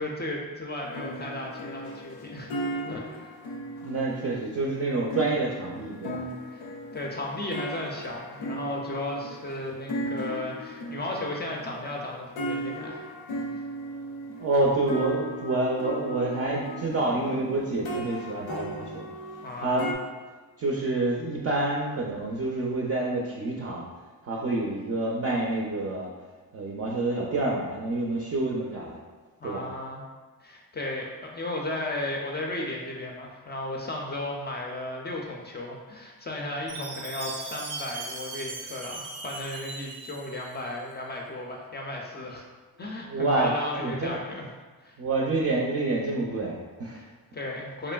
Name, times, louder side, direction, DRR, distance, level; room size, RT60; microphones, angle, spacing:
voice 1, 0.0-2.5 2.9-3.3 6.5-6.6 6.9-13.0 19.4-19.9 29.4-30.0 30.4-42.4 42.8-44.5 44.8-44.9 47.0-47.9, left 1 dB, 30° left, -1 dB, 0.4 m, -35 dB
sound 1, 0.8-19.9, right 1 dB, 85° left, 0.5 m, -37 dB
voice 2, 3.8-6.2 14.4-19.0 19.6-19.9 20.6-23.8 24.2-26.1 26.5-29.0 29.4-29.7 43.0-43.5 43.8-44.2 45.0-47.0, right 2 dB, 45° right, -3 dB, 0.4 m, -28 dB
Chime, 36.7-40.8, right 3 dB, 90° right, 0.6 m, -39 dB
3.0 x 2.4 x 2.2 m, 1.3 s
cardioid pair, 85°, 36 cm